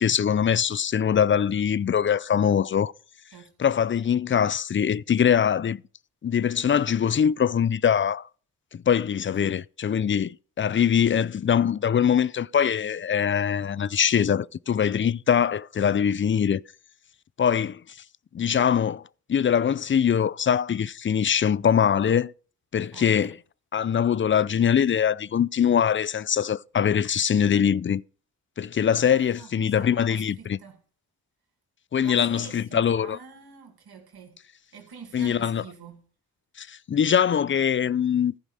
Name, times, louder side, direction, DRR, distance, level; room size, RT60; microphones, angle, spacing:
voice 1, 0.0-2.9 3.6-5.8 6.2-8.2 8.7-16.6 17.4-17.8 18.3-19.0 19.3-22.3 22.7-23.3 23.7-28.0 28.6-30.6 31.9-33.2 35.1-35.6 36.6-38.3, left 8 dB, 30° left, 0.4 m, -23 dB
voice 2, 22.9-23.4 29.1-30.8 32.0-34.4 34.7-36.1, right 6 dB, 70° right, 2.5 m, -46 dB
14.5 x 5.4 x 4.9 m
supercardioid pair, 40°, 39 cm